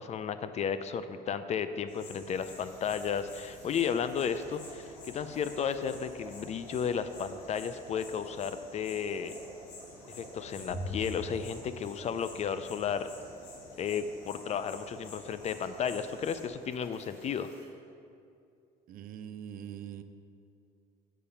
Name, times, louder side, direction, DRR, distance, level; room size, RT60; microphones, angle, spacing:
voice 1, 0.0-4.9 5.1-9.4 10.2-13.1 13.8-17.5, left 7 dB, 40° left, 11 dB, 0.4 m, -33 dB
sound 1, 1.9-16.5, left 1 dB, 80° left, 1.5 m, -47 dB
sound 2, 2.3-17.7, right 2 dB, 15° right, 1.8 m, -53 dB
voice 2, 18.9-20.0, right 9 dB, 60° right, 11 dB, 0.4 m, -42 dB
7.2 x 4.8 x 5.6 m, 2.5 s
cardioid pair, 110°, 17 cm